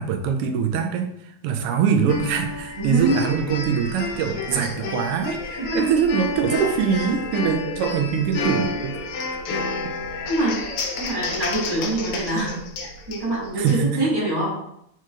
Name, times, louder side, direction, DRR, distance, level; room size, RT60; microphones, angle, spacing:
voice 1, 0.0-9.0 9.5-9.6 13.6-14.0, right 7 dB, 90° right, 5 dB, 1.6 m, -23 dB
sound 1, 2.1-13.8, left 3 dB, 85° left, 1.7 m, -30 dB
voice 2, 2.8-3.2 5.6-5.9 7.6-7.7 10.3-10.6 11.0-12.7 13.1-14.7, right 1 dB, 15° right, -7 dB, 1.2 m, -24 dB
4.5 x 4.4 x 2.4 m, 0.75 s
omnidirectional pair, 2.4 m